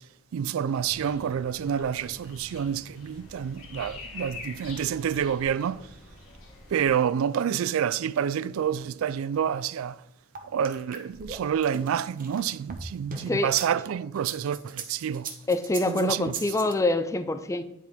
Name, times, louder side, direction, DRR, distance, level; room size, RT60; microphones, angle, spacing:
voice 1, 0.3-5.9 6.7-10.0 10.4-15.3 15.9-16.3, right 8 dB, 70° right, 0.3 m, -28 dB
sound 1, 0.7-6.9, left 3 dB, 85° left, 2.1 m, -45 dB
sound 2, 10.3-13.7 14.1-16.7, right 5 dB, 40° right, 0.9 m, -38 dB
voice 2, 13.1-13.5 15.5-17.6, left 2 dB, 15° left, 0.4 m, -26 dB
9.9 x 4.5 x 3.5 m
head